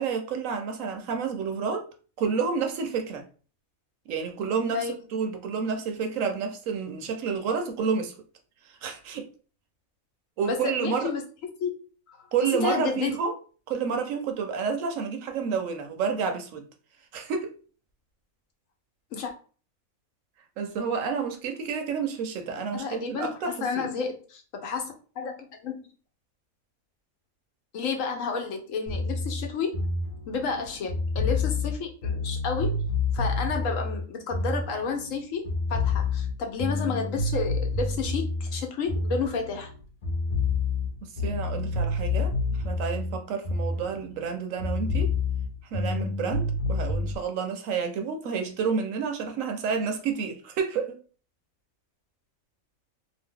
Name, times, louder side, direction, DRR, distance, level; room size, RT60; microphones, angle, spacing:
voice 1, 0.0-1.9 2.2-3.2 4.1-8.1 8.8-9.2 10.4-11.1 12.3-13.4 13.7-16.6 17.1-17.5 20.6-23.9 41.0-42.3 42.6-45.1 45.7-51.0, right 6 dB, 75° right, 0.9 m, -29 dB
voice 2, 10.4-11.2 11.6-11.7 12.1-12.2 12.5-13.2 19.1-19.3 22.7-23.3 23.6-25.9 27.7-29.7 30.3-32.8 33.1-39.7, left 5 dB, 70° left, 1.0 m, -31 dB
sound 1, 28.9-35.2 35.4-39.7 40.0-44.3 44.6-47.1, left 3 dB, 45° left, 0.8 m, -28 dB
2.8 x 2.0 x 3.6 m
omnidirectional pair, 1.5 m